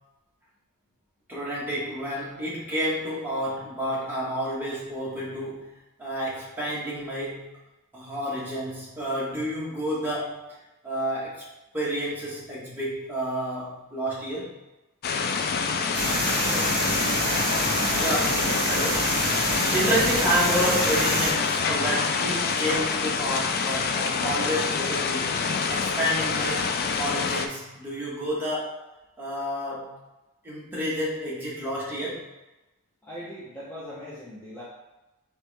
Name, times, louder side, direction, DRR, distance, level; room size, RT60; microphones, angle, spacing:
voice 1, 1.3-5.7 6.0-7.5 7.9-10.4 10.8-11.4 11.7-14.5 18.0-19.1 19.7-25.4 25.7-28.8 29.2-29.9 30.4-32.2, equal, 10° right, -7 dB, 1.3 m, -30 dB
sound 1, 15.0-27.5, left 5 dB, 45° left, 0.3 m, -26 dB
sound 2, 15.9-21.3, right 2 dB, 45° right, 1.5 m, -27 dB
voice 2, 33.0-34.6, equal, 10° left, -10 dB, 0.9 m, -39 dB
4.6 x 3.2 x 3.4 m, 1.0 s
head